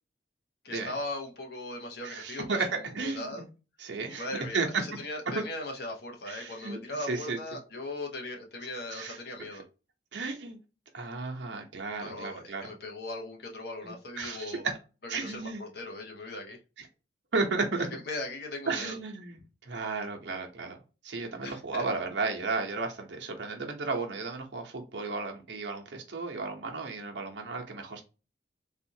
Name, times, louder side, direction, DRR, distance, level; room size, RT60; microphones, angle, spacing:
voice 1, 0.6-2.6 3.0-3.4 4.1-4.7 5.0-9.6 12.0-14.7 15.1-16.6 17.8-19.0 21.4-21.8, left 2 dB, 60° left, 1.0 m, -39 dB
voice 2, 2.0-3.5 3.8-4.8 6.3-7.4 8.9-9.2 9.5-9.6 10.1-10.6 10.9-12.7 13.8-14.8 15.1-15.6 16.8-16.9 17.3-17.9 18.7-20.8 21.0-28.0, right 4 dB, 75° right, 0.8 m, -34 dB
3.5 x 2.4 x 2.8 m
head